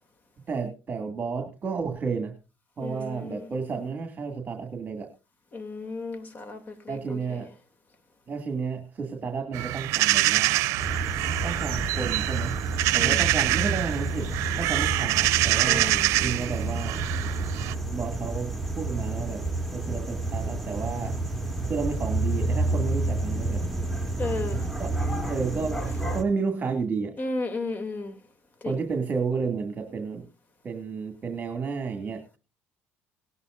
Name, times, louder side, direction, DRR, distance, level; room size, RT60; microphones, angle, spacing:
voice 1, 0.5-2.3 2.8-5.1 6.9-7.5 8.3-10.6 11.4-12.5 12.9-17.0 17.9-19.4 19.7-21.2 21.7-23.6 24.8-25.0 25.3-25.8 26.1-27.1 28.6-30.3 30.6-32.2, right 5 dB, 35° right, 5 dB, 2.3 m, -31 dB
voice 2, 2.8-3.5 5.5-7.4 12.9-13.2 15.6-16.1 24.2-24.6 27.2-28.2 28.6-28.8, left 3 dB, 35° left, 8 dB, 2.7 m, -34 dB
sound 1, 9.5-17.7, right 17 dB, 75° right, 0.6 m, -25 dB
sound 2, 10.8-26.2, right 2 dB, 5° left, 2.2 m, -30 dB
19.0 x 11.0 x 2.5 m, 0.31 s
cardioid pair, 105°, 5 cm